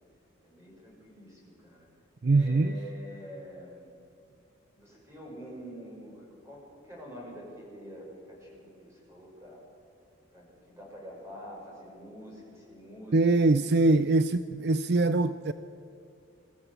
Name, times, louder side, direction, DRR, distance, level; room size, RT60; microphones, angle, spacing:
voice 1, 0.4-1.9 2.2-3.9 4.7-9.6 10.3-13.7, equal, 15° right, -3 dB, 6.1 m, -46 dB
voice 2, 2.2-2.7 13.1-15.5, right 2 dB, 55° right, 12 dB, 0.5 m, -23 dB
22.5 x 14.5 x 8.1 m, 2.7 s
head